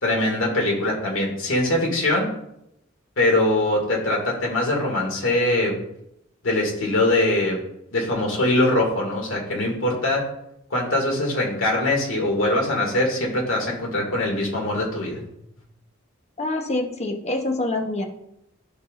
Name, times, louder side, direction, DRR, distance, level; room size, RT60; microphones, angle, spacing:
voice 1, 0.0-2.3 3.2-5.8 6.4-7.6 7.9-10.3 10.7-15.2, left 1 dB, 70° left, -1 dB, 2.2 m, -22 dB
voice 2, 16.4-18.1, left 2 dB, 35° left, 4 dB, 0.9 m, -26 dB
12.5 x 4.7 x 2.5 m, 0.80 s
head